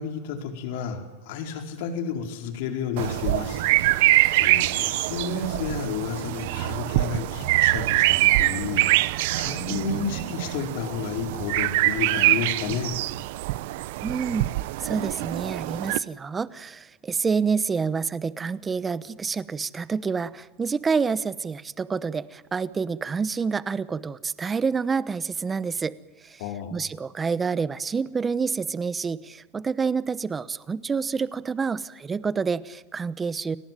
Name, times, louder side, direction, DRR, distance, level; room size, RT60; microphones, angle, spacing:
voice 1, 0.0-8.8 9.3-12.9 26.4-26.7, left 6 dB, 70° left, 4 dB, 4.6 m, -31 dB
sound 1, 3.0-16.0, right 18 dB, 70° right, 0.8 m, -24 dB
voice 2, 14.0-14.5 14.8-26.0 26.2-26.4 26.7-33.6, right 5 dB, 20° right, 17 dB, 1.0 m, -28 dB
29.5 x 19.0 x 9.3 m, 1.2 s
supercardioid pair, 120°, 0 cm